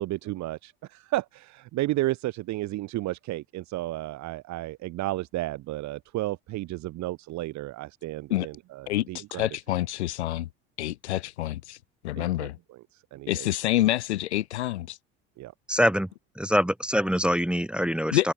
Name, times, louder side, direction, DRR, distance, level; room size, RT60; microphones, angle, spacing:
voice 1, 0.0-9.5 12.2-13.5 15.4-15.5, right 17 dB, 60° right, 3.5 m, -33 dB
voice 2, 8.9-10.5 10.8-11.8 12.0-12.6 13.3-15.0 18.1-18.3, left 15 dB, 85° left, 1.0 m, -27 dB
voice 3, 15.7-16.1 16.4-18.3, equal, 5° right, 1.0 m, -24 dB
hypercardioid pair, 75°, 33 cm